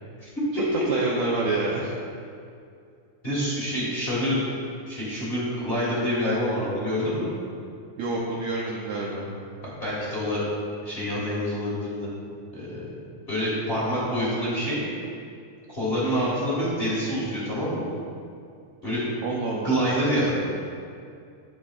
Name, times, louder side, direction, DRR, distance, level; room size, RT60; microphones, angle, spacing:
voice 1, 0.2-0.9 3.2-4.5 4.9-7.3 9.8-10.4 10.8-12.1 12.5-12.8 13.3-14.8 15.7-17.9 18.8-19.1 19.6-20.3, equal, 25° left, -8 dB, 1.3 m, -26 dB
voice 2, 0.9-1.9 8.0-9.3 16.0-16.4 19.2-19.7, right 3 dB, 75° right, -3 dB, 1.8 m, -28 dB
12.0 x 6.1 x 2.4 m, 2.4 s
omnidirectional pair, 3.6 m